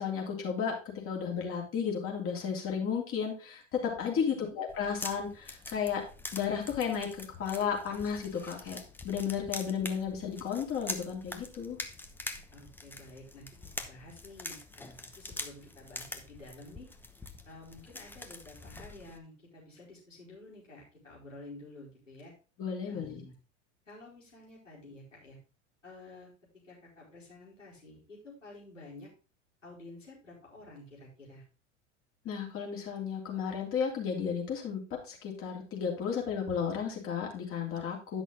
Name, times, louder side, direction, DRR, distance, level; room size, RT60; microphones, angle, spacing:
voice 1, 0.0-6.0 6.3-11.8 22.6-23.2 32.2-38.2, left 7 dB, 35° left, 0 dB, 3.3 m, -33 dB
sound 1, 4.7-19.2, left 2 dB, 5° left, 0.9 m, -44 dB
voice 2, 12.5-16.9 17.4-22.3 22.9-23.3 23.9-25.4 25.8-26.3 26.6-29.1 29.6-31.4, left 2 dB, 85° left, -5 dB, 4.6 m, -51 dB
10.5 x 6.2 x 3.8 m, 0.34 s
figure-of-eight pair, 80°, 37 cm